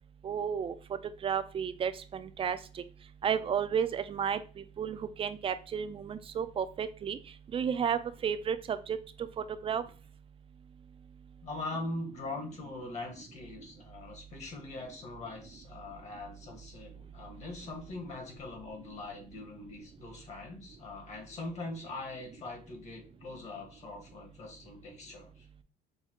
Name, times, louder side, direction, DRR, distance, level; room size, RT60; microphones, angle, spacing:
voice 1, 0.2-0.8 1.2-2.8 3.2-7.2 7.5-9.3 9.6-9.8, right 7 dB, 35° right, 12 dB, 0.4 m, -32 dB
voice 2, 11.4-25.5, left 2 dB, 45° left, 2 dB, 1.4 m, -42 dB
5.7 x 2.3 x 2.9 m, 0.36 s
cardioid pair, 110°, 17 cm